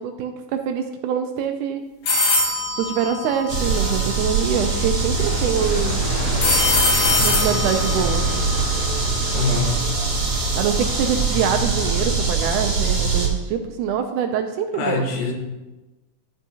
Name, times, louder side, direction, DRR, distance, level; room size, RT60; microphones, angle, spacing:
voice 1, 0.0-1.8 2.8-6.0 7.2-8.4 10.6-15.1, right 7 dB, 80° right, 6 dB, 1.9 m, -24 dB
sound 1, 2.1-4.1 6.4-9.4, left 2 dB, 50° left, 2.2 m, -23 dB
sound 2, 3.5-13.3, right 4 dB, 45° right, 3.0 m, -23 dB
sound 3, 5.1-10.7, left 3 dB, 70° left, 2.7 m, -33 dB
voice 2, 9.3-9.8 14.7-15.3, left 3 dB, 90° left, 1 dB, 2.9 m, -24 dB
11.0 x 6.2 x 2.8 m, 1.1 s
omnidirectional pair, 3.9 m